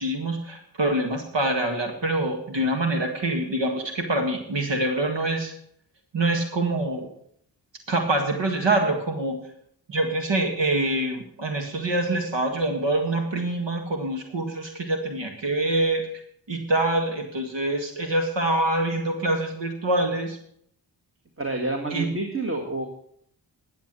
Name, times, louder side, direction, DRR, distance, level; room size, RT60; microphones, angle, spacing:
voice 1, 0.0-5.5 6.1-7.1 7.9-9.4 9.9-16.0 16.5-20.4 21.9-22.1, right 2 dB, 70° right, 3 dB, 1.9 m, -25 dB
voice 2, 21.4-22.9, right 2 dB, 30° right, 3 dB, 1.9 m, -28 dB
11.5 x 7.2 x 7.6 m, 0.67 s
cardioid pair, 45°, 45 cm